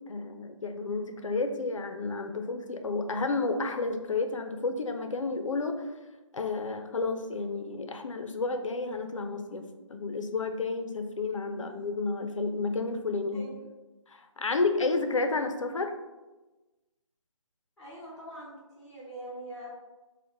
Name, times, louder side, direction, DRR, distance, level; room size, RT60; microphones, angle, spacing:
voice 1, 0.0-5.9 6.3-9.6 9.9-13.5 14.1-15.9, left 3 dB, 70° left, 6 dB, 0.4 m, -31 dB
voice 2, 11.5-11.8 13.3-13.7 17.8-19.7, right 1 dB, ahead, -12 dB, 0.5 m, -44 dB
3.8 x 2.1 x 3.7 m, 1.1 s
figure-of-eight pair, 150°, 17 cm